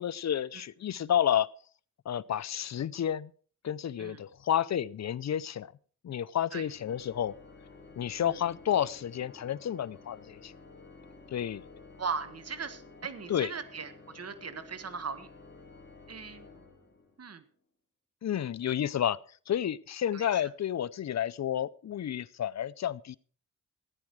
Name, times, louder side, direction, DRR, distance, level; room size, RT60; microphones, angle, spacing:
voice 1, 0.0-1.5 2.1-3.3 3.6-5.7 6.0-7.3 8.0-10.5 11.3-11.6 13.3-13.5 18.2-19.2 19.5-23.2, left 10 dB, 55° left, 18 dB, 0.6 m, -30 dB
Organ, 6.6-17.3, left 3 dB, 35° left, 3.3 m, -53 dB
voice 2, 12.0-15.3 16.1-16.5 17.2-17.4 20.1-20.3, right 5 dB, 50° right, 12 dB, 1.4 m, -38 dB
14.5 x 9.9 x 4.8 m, 0.43 s
cardioid pair, 85°, 33 cm